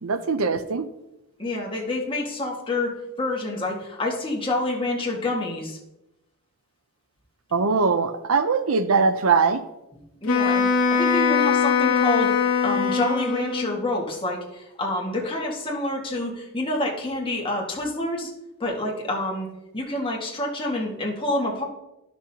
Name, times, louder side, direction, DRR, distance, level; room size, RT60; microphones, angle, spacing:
voice 1, 0.0-0.9 7.5-9.6, right 4 dB, 70° right, 11 dB, 0.6 m, -21 dB
voice 2, 1.4-5.8 7.5-7.6 10.2-18.3 18.6-19.5 19.7-21.6, left 2 dB, 25° left, -1 dB, 1.8 m, -28 dB
Wind instrument woodwind instrument, 10.3-13.8, left 6 dB, 75° left, 1.4 m, -21 dB
13.0 x 6.1 x 2.8 m, 0.90 s
head